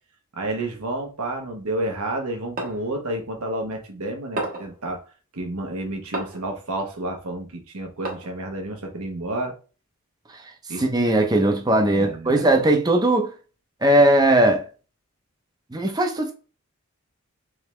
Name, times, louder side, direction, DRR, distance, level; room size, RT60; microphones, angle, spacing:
voice 1, 0.3-5.0 5.3-9.5 10.7-10.8 11.9-12.5, right 1 dB, 80° right, 1.0 m, -30 dB
sound 1, 2.6-2.9 4.4-4.8 6.1-6.5 8.1-8.5, right 2 dB, 40° right, 0.9 m, -31 dB
voice 2, 10.8-13.3 13.8-14.6 15.7-16.3, right 1 dB, 20° right, 0.5 m, -19 dB
3.6 x 3.4 x 3.1 m
head